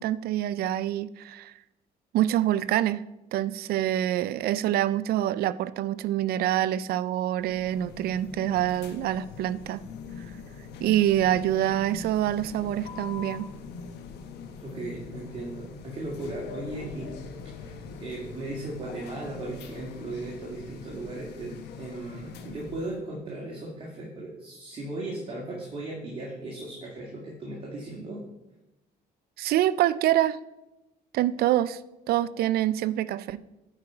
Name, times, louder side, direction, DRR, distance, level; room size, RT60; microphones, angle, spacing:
voice 1, 0.0-1.5 2.1-3.0 3.3-9.8 10.8-13.5 29.4-30.4 31.1-31.8 32.1-33.4, right 12 dB, 65° right, 17 dB, 0.4 m, -26 dB
sound 1, 7.4-23.0, left 5 dB, 80° left, 0.9 m, -43 dB
voice 2, 14.6-17.1 17.6-28.2, right 2 dB, 35° right, -4 dB, 2.1 m, -37 dB
10.0 x 4.9 x 4.4 m, 0.97 s
cardioid pair, 110°, 17 cm